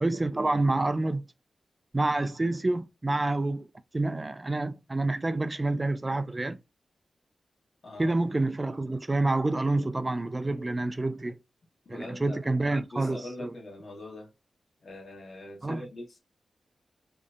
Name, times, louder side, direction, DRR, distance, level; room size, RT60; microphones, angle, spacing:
voice 1, 0.0-1.2 1.9-3.7 3.9-6.6 8.0-11.4 11.9-13.5 15.6-15.8, right 2 dB, 25° right, 0.3 m, -28 dB
voice 2, 7.8-8.2 11.8-14.3 14.8-16.2, left 1 dB, 55° left, 1.1 m, -43 dB
2.6 x 2.1 x 2.3 m
wide cardioid pair, 100°, 0 cm